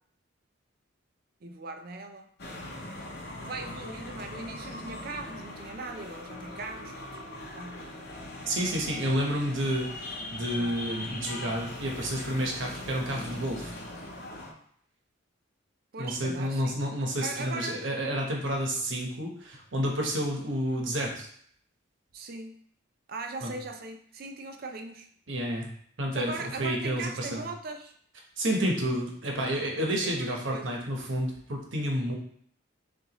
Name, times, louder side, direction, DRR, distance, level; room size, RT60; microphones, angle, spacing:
voice 1, 1.4-2.3 3.0-3.1 3.4-8.1 15.9-16.8 17.2-18.0 22.1-22.6 23.1-25.1 26.1-27.9 28.6-28.9 30.0-30.7, right 3 dB, 50° right, 5 dB, 0.5 m, -40 dB
sound 1, 2.4-14.5, left 1 dB, 55° left, 0.7 m, -41 dB
voice 2, 8.5-13.7 16.0-21.3 23.4-23.5 25.3-25.7 26.0-27.4 28.4-32.2, equal, 70° right, 0 dB, 1.1 m, -30 dB
6.6 x 2.5 x 3.0 m, 0.62 s
head